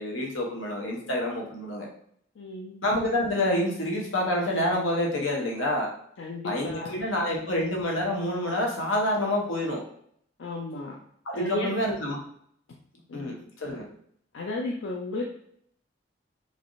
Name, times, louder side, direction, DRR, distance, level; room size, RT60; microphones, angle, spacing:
voice 1, 0.0-1.9 2.8-5.9 6.4-9.8 11.3-12.2 13.1-13.9, left 1 dB, 90° left, -1 dB, 0.8 m, -27 dB
voice 2, 2.4-2.8 6.2-7.0 10.4-10.9 11.3-11.7 13.1-13.4 14.3-15.2, left 2 dB, 75° left, -1 dB, 0.4 m, -34 dB
3.2 x 2.5 x 2.6 m, 0.67 s
head